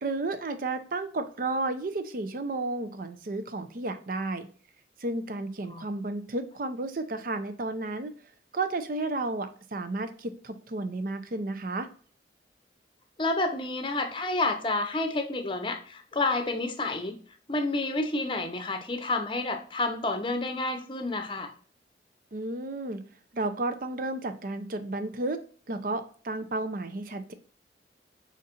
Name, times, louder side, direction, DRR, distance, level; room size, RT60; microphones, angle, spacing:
voice 1, 0.0-4.5 5.0-8.2 8.5-11.9 22.3-23.0 23.3-25.4 25.7-27.3, right 2 dB, 50° right, 9 dB, 0.5 m, -32 dB
voice 2, 13.2-17.2 17.5-21.5, left 2 dB, 30° left, 6 dB, 0.7 m, -29 dB
5.1 x 4.1 x 2.5 m, 0.43 s
head